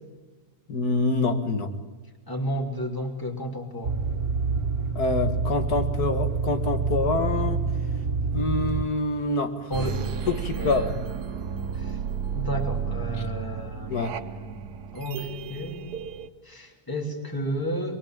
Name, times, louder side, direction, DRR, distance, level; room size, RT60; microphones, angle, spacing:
voice 1, 0.7-1.8 5.0-7.6 8.3-9.7 10.3-10.9 13.9-14.1, left 3 dB, 75° left, 8 dB, 2.3 m, -26 dB
voice 2, 2.3-4.0 9.7-10.9 11.7-12.0 12.3-14.6 14.9-15.9 16.4-18.0, equal, 15° left, 3 dB, 2.9 m, -32 dB
sound 1, 3.8-8.9, right 5 dB, 65° right, 1.8 m, -27 dB
sound 2, 9.7-16.3, right 7 dB, 85° right, 1.5 m, -32 dB
23.0 x 22.0 x 8.8 m, 1.2 s
omnidirectional pair, 1.6 m